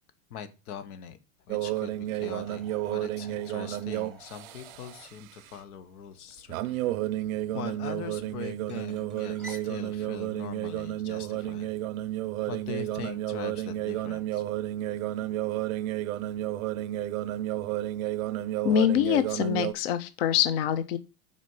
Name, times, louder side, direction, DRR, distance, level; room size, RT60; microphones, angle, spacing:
voice 1, 0.3-1.2 1.5-6.8 7.5-11.7 12.5-14.4, left 8 dB, 80° left, 11 dB, 1.3 m, -42 dB
sound 1, 1.5-5.0 6.5-19.7, right 14 dB, 65° right, 0.5 m, -32 dB
sound 2, 2.2-9.7, right 2 dB, ahead, 0.9 m, -53 dB
voice 2, 18.6-21.0, left 11 dB, 45° left, 13 dB, 0.4 m, -25 dB
6.2 x 4.3 x 5.5 m, 0.30 s
supercardioid pair, 175°, 45 cm